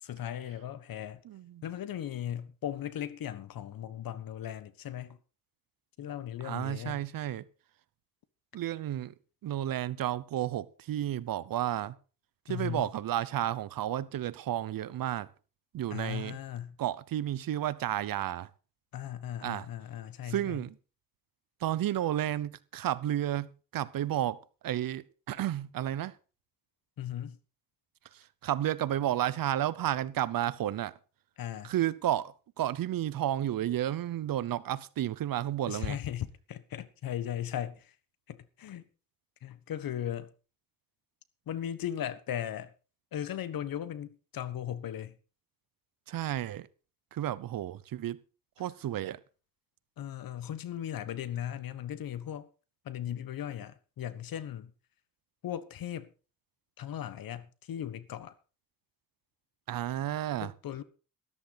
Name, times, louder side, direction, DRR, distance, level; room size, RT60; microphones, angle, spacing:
voice 1, 0.0-1.2 1.6-5.2 6.0-7.0 12.5-12.9 15.9-16.8 18.9-20.6 27.0-27.4 31.4-31.7 35.7-37.9 38.3-38.9 39.4-40.3 41.5-42.7 43.1-45.2 50.0-52.5 52.8-54.7 55.4-56.1 56.8-58.3 60.4-60.8, left 10 dB, 80° left, 1.4 m, -37 dB
voice 2, 1.2-1.6 6.4-7.5 8.5-9.1 9.4-12.0 12.5-15.3 15.7-16.4 16.8-18.5 19.4-19.7 20.3-20.7 21.6-26.1 28.1-30.9 31.6-36.0 46.1-46.7 47.1-48.2 48.6-49.2 59.7-60.5, right 12 dB, 75° right, 0.9 m, -32 dB
13.5 x 13.0 x 4.1 m
cardioid pair, 125°, 34 cm